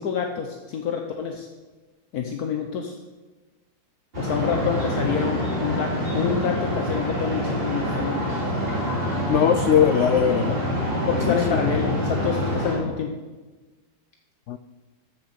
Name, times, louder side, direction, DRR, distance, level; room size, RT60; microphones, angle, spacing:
voice 1, 0.0-1.5 2.1-2.9 4.2-8.3 9.8-9.9 11.1-13.1, left 7 dB, 65° left, 3 dB, 1.4 m, -27 dB
sound 1, 4.1-12.8, equal, 35° right, 3.1 m, -26 dB
voice 2, 9.3-10.6 11.3-11.4 14.5-14.6, left 8 dB, 80° left, 11 dB, 0.6 m, -20 dB
14.0 x 6.6 x 6.5 m, 1.2 s
omnidirectional pair, 1.8 m